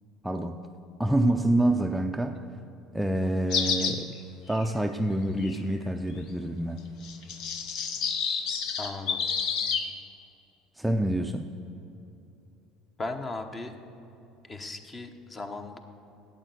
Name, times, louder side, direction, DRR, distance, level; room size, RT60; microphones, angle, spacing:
voice 1, 0.2-0.7 1.0-2.4 2.9-4.2 4.5-6.9 10.8-11.5, right 1 dB, 5° right, 5 dB, 0.5 m, -27 dB
sound 1, 3.5-4.0 4.5-4.6 5.4-5.6 7.0-9.9, left 6 dB, 65° left, 1.0 m, -29 dB
voice 2, 8.8-9.2 13.0-13.7 14.4-15.8, left 3 dB, 25° left, 7 dB, 1.0 m, -37 dB
8.9 x 8.1 x 7.8 m, 2.9 s
supercardioid pair, 95°, 0 cm